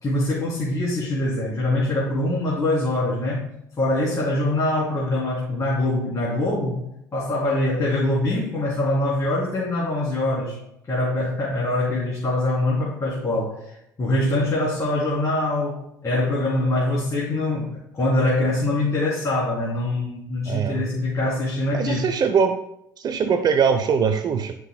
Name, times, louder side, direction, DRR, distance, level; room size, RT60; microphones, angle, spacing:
voice 1, 0.0-3.4 3.8-6.8 7.1-10.6 10.9-22.1, left 1 dB, 30° left, -6 dB, 3.0 m, -24 dB
voice 2, 21.7-22.6 23.0-24.6, right 6 dB, 40° right, 9 dB, 0.7 m, -21 dB
12.5 x 6.1 x 2.2 m, 0.78 s
hypercardioid pair, 55°, 10 cm